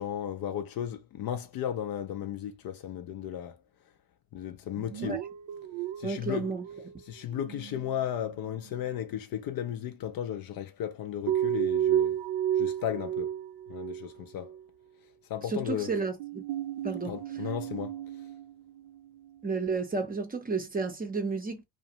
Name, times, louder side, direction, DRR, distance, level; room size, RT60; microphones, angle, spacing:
voice 1, 0.0-3.6 4.3-5.2 6.0-6.5 7.1-12.2 12.6-13.3 13.7-14.5 15.3-15.9 17.1-18.0, left 10 dB, 50° left, 0.5 m, -35 dB
sound 1, 4.8-7.0 7.3-8.0 11.3-14.1 14.4-14.6 16.2-19.0, right 11 dB, 60° right, 0.5 m, -32 dB
voice 2, 6.0-6.7 15.4-16.4 16.8-17.2 19.4-21.6, right 4 dB, 20° right, 0.6 m, -32 dB
2.4 x 2.1 x 2.8 m
supercardioid pair, 70°, 48 cm